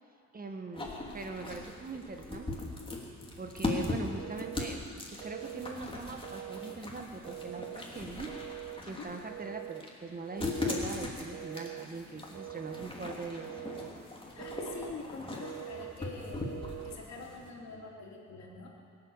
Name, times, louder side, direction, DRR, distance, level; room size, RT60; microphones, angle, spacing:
voice 1, 0.3-2.7 3.4-13.6, right 3 dB, 30° right, 4 dB, 1.4 m, -42 dB
sound 1, 0.7-17.5, left 2 dB, 15° left, 3.0 m, -40 dB
Telephone, 4.2-4.8 5.2-5.8 6.2-6.8 7.2-7.8 8.3-8.8 9.3-9.9 10.3-10.9 11.3-11.9 12.3-12.9 13.4-13.9 14.4-15.0 15.4-16.0 16.4-17.0, right 15 dB, 65° right, 0.5 m, -44 dB
voice 2, 14.3-16.5 16.8-18.7, left 4 dB, 60° left, -2 dB, 3.4 m, -45 dB
24.0 x 8.1 x 7.2 m, 2.6 s
cardioid pair, 90°, 30 cm